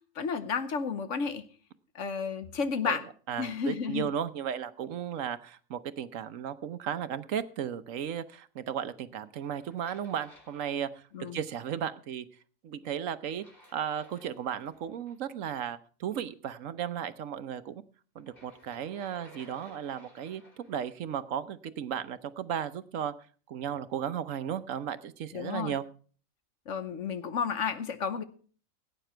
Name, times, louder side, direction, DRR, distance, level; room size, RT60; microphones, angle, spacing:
voice 1, 0.2-1.4 1.9-3.1 3.4-4.1 11.1-11.4 25.3-25.8 26.7-28.2, left 6 dB, 65° left, 11 dB, 1.3 m, -32 dB
voice 2, 3.3-11.0 11.3-12.3 12.6-13.4 13.7-17.8 18.1-23.1 23.5-25.9, right 9 dB, 70° right, 13 dB, 1.1 m, -35 dB
sound 1, 9.3-11.3 13.2-15.1 18.2-20.9, left 1 dB, 40° left, 3.6 m, -57 dB
17.0 x 9.1 x 4.5 m, 0.42 s
omnidirectional pair, 1.4 m